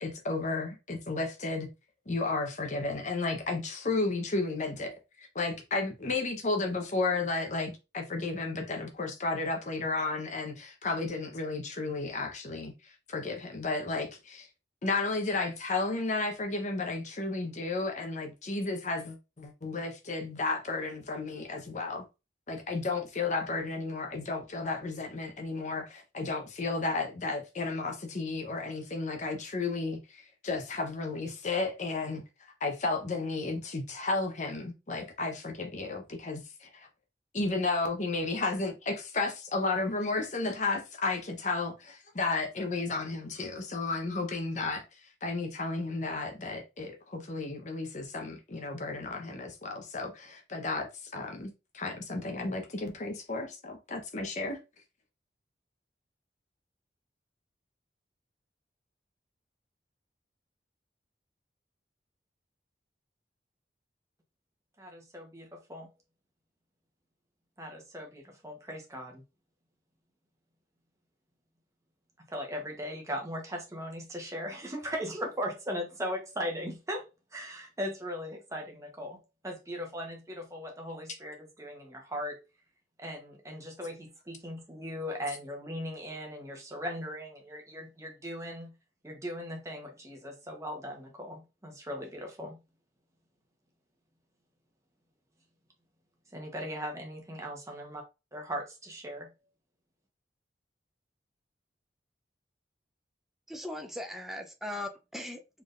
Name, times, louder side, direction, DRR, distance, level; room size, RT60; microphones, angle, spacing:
voice 1, 0.0-1.7 2.1-5.0 5.3-14.5 14.8-22.0 22.5-36.9 37.3-44.8 45.2-54.6, left 3 dB, 45° left, 0.9 m, -33 dB
voice 2, 64.8-65.9 67.6-69.2 72.3-82.4 83.0-88.7 89.0-92.6 96.3-98.0 98.3-99.3, equal, 20° right, 1.0 m, -38 dB
voice 3, 103.5-105.6, left 1 dB, ahead, 0.5 m, -39 dB
4.3 x 3.5 x 2.5 m
head